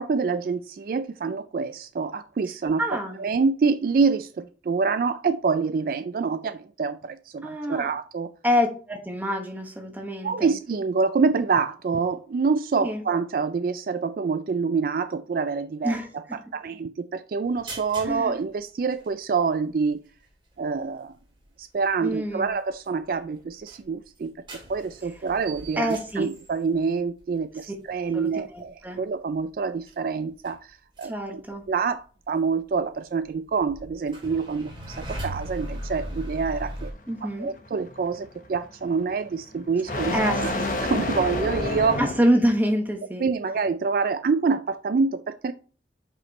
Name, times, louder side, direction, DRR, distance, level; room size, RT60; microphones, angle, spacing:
voice 1, 0.0-8.3 10.2-20.0 20.6-21.1 21.6-24.3 24.7-31.4 31.7-36.9 37.2-40.5 40.8-42.0 43.2-45.5, right 5 dB, 50° right, 0.3 m, -26 dB
voice 2, 2.8-3.2 7.4-7.9 8.4-10.5 12.8-13.0 15.8-16.1 18.0-18.4 22.0-22.5 25.8-26.3 28.1-29.0 31.0-31.6 37.1-37.5 40.1-40.7 42.0-43.3, equal, 10° right, 1.2 m, -26 dB
sound 1, 17.5-18.2 18.5-18.6 18.9-19.1 20.5-20.6 21.1-21.4 22.0-22.5 22.8-22.9 23.2-26.8 27.2-27.5 28.3-28.4 28.6-28.9 29.4-29.6 29.8-30.1 30.3-31.2 31.5-31.7 32.7-32.8 33.2-36.9, right 1 dB, 25° right, 2.4 m, -38 dB
sound 2, 34.9-42.2, left 2 dB, 45° left, 1.1 m, -30 dB
5.5 x 5.2 x 4.1 m
head